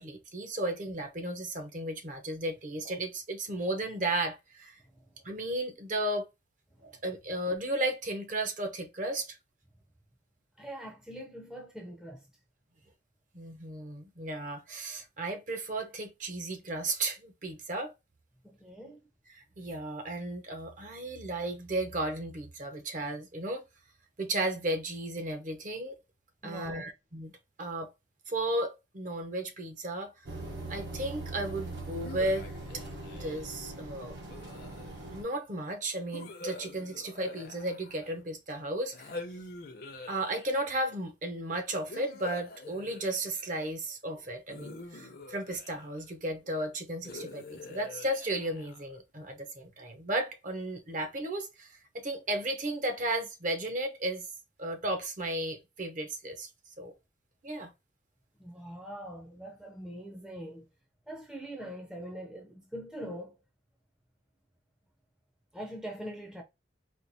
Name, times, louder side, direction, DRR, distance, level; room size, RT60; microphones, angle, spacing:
voice 1, 0.0-4.8 5.2-6.3 6.8-9.4 13.3-17.9 19.3-23.6 24.2-25.9 26.4-27.9 28.3-30.1 30.7-32.5 32.7-32.8 33.1-34.2 35.1-39.1 40.1-54.3 54.6-56.5 56.8-56.9 57.4-57.7, right 1 dB, 45° right, 0.7 m, -34 dB
voice 2, 10.6-12.2 18.4-19.0 26.4-26.9 58.4-60.7 61.1-63.4 65.5-66.4, equal, 5° right, 0.5 m, -43 dB
sound 1, 30.3-35.2, right 2 dB, 70° right, 1.0 m, -41 dB
sound 2, 32.0-33.6 34.3-35.2 36.1-38.3 38.9-40.8 41.9-43.7 44.5-46.1 47.0-49.0, left 3 dB, 50° left, 0.6 m, -46 dB
4.3 x 2.4 x 2.7 m
head